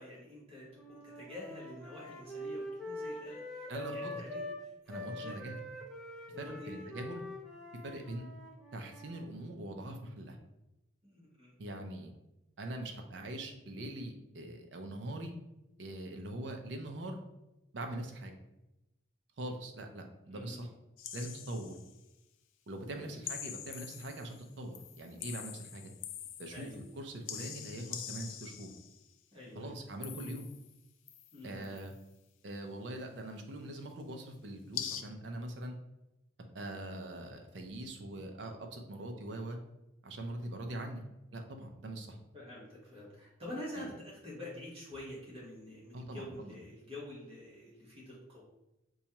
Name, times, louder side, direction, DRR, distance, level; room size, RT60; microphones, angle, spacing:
voice 1, 0.0-4.4 4.8-5.4 6.3-6.9 7.8-8.1 11.0-11.5 20.3-20.6 23.0-23.2 26.5-26.8 29.3-29.8 31.3-31.7 42.3-48.4, left 1 dB, 30° right, -5 dB, 1.1 m, -47 dB
sound 1, 0.7-4.6 4.9-9.3, left 1 dB, ahead, 0.5 m, -44 dB
voice 2, 3.7-4.2 4.9-5.6 6.4-7.2 7.8-8.3 8.7-10.4 11.6-12.1 12.6-15.4 15.8-17.2 17.7-18.3 19.4-20.7 21.1-21.8 22.7-25.9 26.4-26.7 27.0-28.7 29.5-30.5 31.4-31.9 32.4-35.8 36.5-39.6 40.0-41.0 41.3-42.2 43.8-43.9 45.9-46.5, right 1 dB, 65° right, 4 dB, 0.5 m, -42 dB
sound 2, 21.0-22.0 23.2-24.5 24.7-26.9 27.3-29.0 30.0-30.8 31.1-31.9 34.7-35.0, left 9 dB, 85° left, 0.3 m, -44 dB
4.1 x 2.3 x 2.9 m, 0.92 s
head